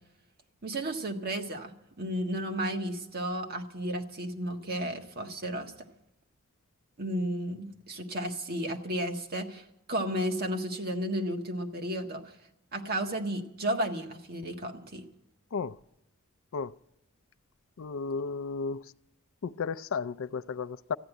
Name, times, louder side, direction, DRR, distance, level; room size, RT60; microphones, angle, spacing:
voice 1, 0.6-5.7 7.0-12.2 12.7-15.0, right 1 dB, 45° right, 1.6 m, -33 dB
voice 2, 17.8-18.9 19.4-21.0, left 5 dB, 65° left, 0.4 m, -33 dB
14.0 x 9.6 x 9.0 m
head